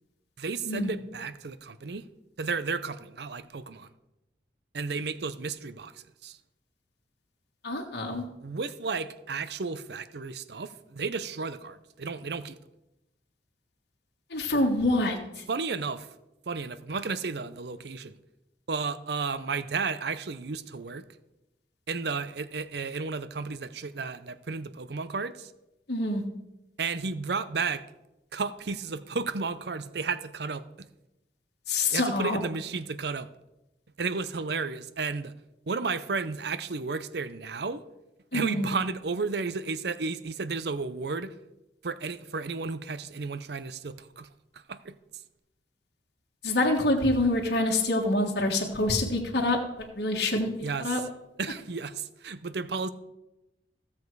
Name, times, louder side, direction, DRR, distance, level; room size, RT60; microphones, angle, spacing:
voice 1, 0.4-2.1 2.4-3.9 4.7-6.4 8.4-12.6 15.5-16.1 16.5-18.1 18.7-21.0 21.9-25.5 26.8-27.8 28.3-30.9 31.9-33.3 34.0-35.3 35.7-37.8 38.3-41.3 41.8-44.3 44.7-44.9 50.6-51.0 51.4-52.9, right 4 dB, 65° right, 14 dB, 0.6 m, -33 dB
voice 2, 7.6-8.2 14.3-15.4 25.9-26.2 31.7-32.4 38.3-38.7 46.4-49.6 49.9-50.5 50.8-51.0, left 2 dB, 60° left, -1 dB, 1.6 m, -26 dB
15.5 x 7.2 x 4.7 m, 0.94 s
head